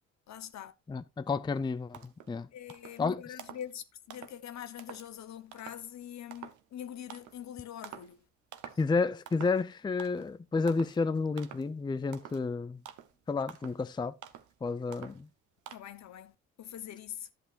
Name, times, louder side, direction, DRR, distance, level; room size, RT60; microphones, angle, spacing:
voice 1, 0.3-0.7 2.5-8.2 15.7-17.3, left 10 dB, 65° left, 1.0 m, -44 dB
voice 2, 0.9-2.5 3.0-3.2 8.8-12.8 13.3-14.1 14.6-15.3, left 4 dB, 15° left, 0.5 m, -31 dB
sound 1, 1.5-1.6 1.9-2.3 2.7-3.0 3.4-3.7 4.1-4.4 4.8-5.1 5.5-5.9 6.3-6.6 7.1-7.4 7.8-8.2 8.5-8.9 9.3-9.7 10.0-10.3 10.7-11.0 11.4-11.7 12.1-12.5 12.9-13.2 13.5-13.8 14.2-14.5 14.9-15.3 15.7-15.8, right 10 dB, 85° right, 1.0 m, -48 dB
11.5 x 8.0 x 2.5 m
cardioid pair, 85°, 29 cm